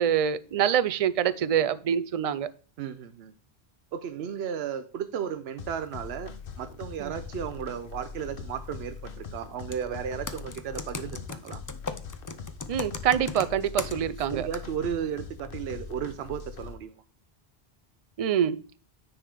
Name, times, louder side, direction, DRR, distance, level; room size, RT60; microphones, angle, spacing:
voice 1, 0.0-2.5 7.0-7.1 12.7-14.5 18.2-18.6, right 9 dB, 55° right, 14 dB, 0.4 m, -25 dB
voice 2, 2.8-3.3 3.9-11.6 14.3-17.0, right 8 dB, 85° right, 10 dB, 0.9 m, -34 dB
sound 1, 5.6-16.7, left 5 dB, 65° left, 1.0 m, -41 dB
Computer keyboard, 9.6-9.8 10.3-14.3 14.5-14.7, left 4 dB, 30° left, 0.3 m, -36 dB
9.6 x 3.6 x 4.9 m, 0.39 s
omnidirectional pair, 1.0 m